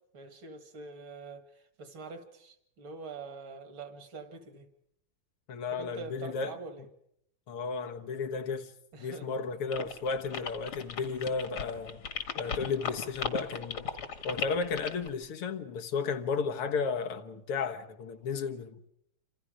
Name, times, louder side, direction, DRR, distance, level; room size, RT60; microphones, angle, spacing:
voice 1, 0.1-4.7 5.7-6.9 8.9-9.5, right 4 dB, 65° right, 2.9 m, -45 dB
voice 2, 5.5-6.6 7.5-8.7 9.0-12.0 12.4-13.9 14.2-18.9, left 5 dB, 85° left, 2.3 m, -33 dB
sound 1, 9.7-15.1, left 6 dB, 70° left, 2.6 m, -36 dB
27.5 x 27.0 x 5.1 m
omnidirectional pair, 2.4 m